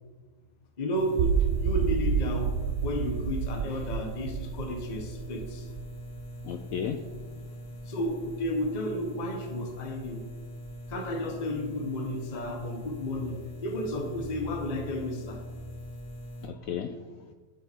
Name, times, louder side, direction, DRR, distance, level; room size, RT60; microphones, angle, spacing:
voice 1, 0.8-2.5 2.8-5.7 7.9-10.2 10.9-15.4, left 1 dB, 30° left, 3 dB, 1.0 m, -32 dB
sound 1, 0.9-16.5, left 1 dB, 55° left, 1.5 m, -42 dB
sound 2, 1.2-7.3, right 6 dB, 75° right, 1.2 m, -30 dB
voice 2, 6.4-7.4 16.4-17.3, left 7 dB, 75° left, 7 dB, 0.7 m, -35 dB
9.0 x 8.1 x 4.5 m, 1.4 s
omnidirectional pair, 2.0 m